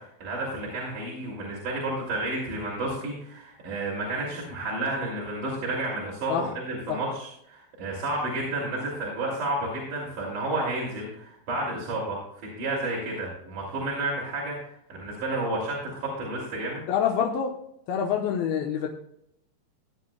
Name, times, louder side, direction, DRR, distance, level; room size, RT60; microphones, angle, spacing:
voice 1, 0.0-16.8, right 2 dB, 55° right, -5 dB, 4.0 m, -31 dB
voice 2, 16.9-17.5 17.9-18.9, left 8 dB, 80° left, 1 dB, 2.8 m, -26 dB
17.0 x 10.5 x 2.3 m, 0.74 s
omnidirectional pair, 4.5 m